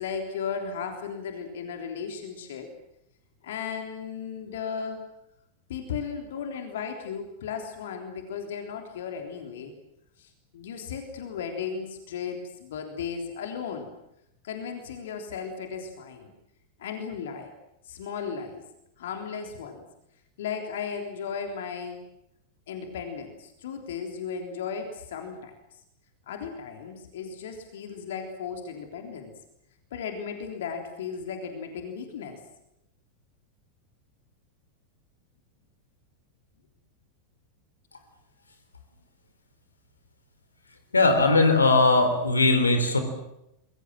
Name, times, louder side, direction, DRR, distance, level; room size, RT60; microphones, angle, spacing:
voice 1, 0.0-2.7 3.4-5.0 5.7-9.7 10.2-13.9 14.4-16.3 16.8-17.5 17.9-18.6 19.0-19.8 20.4-22.0 22.7-25.5 26.3-29.3 29.9-32.4, left 6 dB, 60° left, 4 dB, 3.5 m, -35 dB
voice 2, 40.9-43.0, left 3 dB, 75° left, 7 dB, 3.8 m, -19 dB
27.0 x 22.0 x 7.7 m, 0.85 s
figure-of-eight pair, 90°, 0 cm